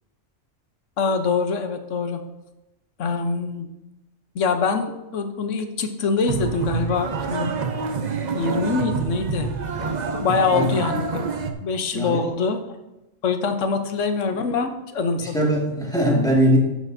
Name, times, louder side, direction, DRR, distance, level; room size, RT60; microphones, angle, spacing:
voice 1, 1.0-2.2 3.0-3.7 4.3-7.5 8.3-9.5 10.1-11.2 11.6-12.6 13.2-15.3, left 4 dB, 65° left, 7 dB, 1.1 m, -24 dB
sound 1, 6.3-11.5, right 5 dB, 50° right, 0.6 m, -27 dB
voice 2, 15.2-16.6, equal, 5° left, -4 dB, 1.8 m, -20 dB
11.0 x 6.6 x 2.6 m, 1.0 s
omnidirectional pair, 1.4 m